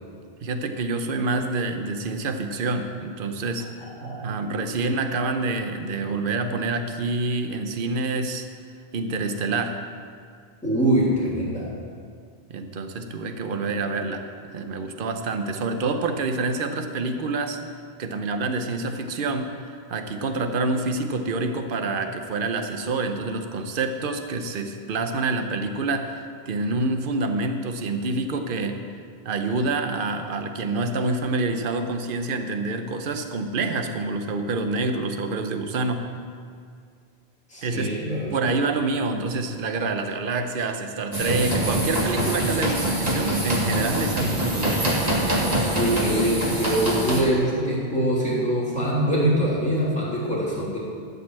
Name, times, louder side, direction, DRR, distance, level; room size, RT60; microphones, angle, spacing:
voice 1, 0.4-3.7 4.2-8.5 8.9-9.8 12.5-17.6 18.0-28.8 29.2-36.1 37.6-37.9 38.3-44.8, right 3 dB, 60° right, 6 dB, 1.0 m, -27 dB
voice 2, 3.8-4.4 10.6-11.7 37.5-38.3 45.7-50.8, right 1 dB, 5° left, -8 dB, 3.1 m, -24 dB
sound 1, 41.1-47.2, right 1 dB, 40° right, 2.0 m, -24 dB
13.0 x 5.4 x 7.5 m, 2.2 s
omnidirectional pair, 1.1 m